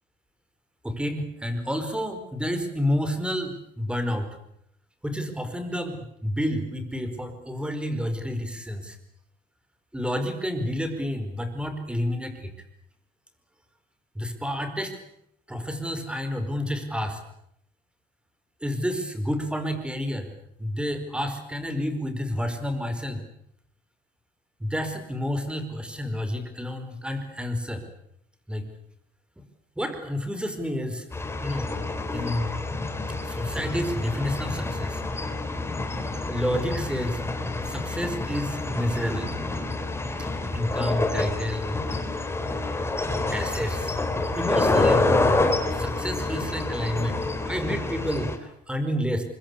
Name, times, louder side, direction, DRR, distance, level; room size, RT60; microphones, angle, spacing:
voice 1, 0.8-4.3 5.0-9.0 9.9-12.5 14.1-15.0 15.5-17.2 18.6-20.3 20.6-23.2 24.6-27.8 28.5-28.7 29.8-31.1 31.4-31.7 32.1-32.6 33.2-35.0 36.2-37.2 37.6-39.3 40.5-41.7 43.0-43.9 44.3-45.1 45.7-49.2, equal, 5° right, 8 dB, 5.0 m, -29 dB
sound 1, 31.1-48.4, left 2 dB, 15° left, 3.9 m, -27 dB
25.0 x 23.0 x 8.6 m, 0.75 s
cardioid pair, 110°, 17 cm